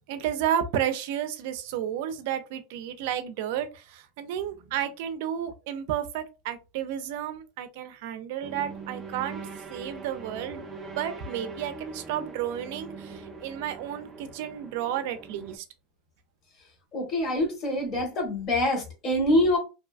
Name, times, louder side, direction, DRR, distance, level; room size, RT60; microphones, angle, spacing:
voice 1, 0.1-9.4 9.7-10.7 11.0-15.6, right 10 dB, 70° right, 0.4 m, -32 dB
sound 1, 8.4-15.6, right 4 dB, 15° right, 0.5 m, -41 dB
voice 2, 16.9-19.6, left 1 dB, 40° left, 1.2 m, -25 dB
2.6 x 2.2 x 2.4 m
supercardioid pair, 145°, 0 cm